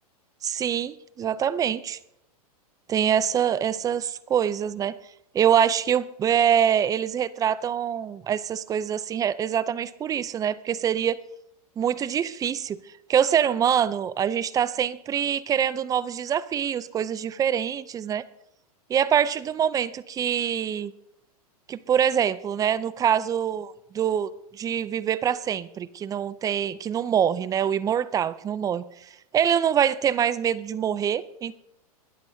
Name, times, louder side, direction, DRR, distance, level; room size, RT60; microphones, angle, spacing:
voice 1, 0.4-2.0 2.9-4.9 5.3-11.2 11.8-12.8 13.1-18.2 18.9-20.9 21.7-28.8 29.3-31.6, right 9 dB, 20° right, 18 dB, 0.5 m, -25 dB
21.5 x 12.5 x 2.7 m, 0.78 s
hypercardioid pair, 125°, 19 cm